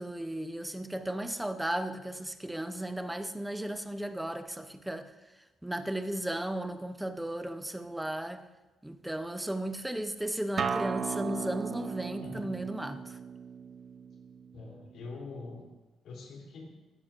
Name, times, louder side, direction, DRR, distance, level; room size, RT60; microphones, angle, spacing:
voice 1, 0.0-5.1 5.6-8.4 8.8-13.2, right 1 dB, 5° right, 8 dB, 0.7 m, -35 dB
Acoustic guitar, 10.6-15.8, right 6 dB, 45° right, 0.6 m, -37 dB
voice 2, 12.2-12.6 14.5-15.7 16.0-16.8, left 3 dB, 75° left, -1 dB, 3.0 m, -44 dB
16.5 x 11.5 x 2.5 m, 1.1 s
cardioid pair, 125°, 0 cm